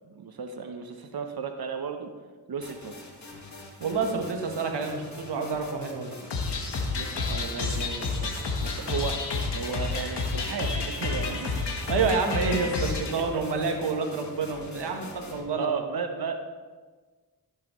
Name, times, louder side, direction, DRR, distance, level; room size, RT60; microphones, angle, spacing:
voice 1, 0.0-2.1 2.5-2.9 7.0-11.8 13.1-13.4 15.5-16.4, right 5 dB, 65° right, 6 dB, 1.0 m, -35 dB
sound 1, 2.6-15.4, left 1 dB, 45° left, 2.1 m, -45 dB
voice 2, 3.8-6.2 11.9-15.7, right 4 dB, 85° right, 3 dB, 1.5 m, -28 dB
sound 2, 6.3-13.1, left 3 dB, 85° left, 1.5 m, -30 dB
14.5 x 7.5 x 3.1 m, 1.4 s
cardioid pair, 55°, 40 cm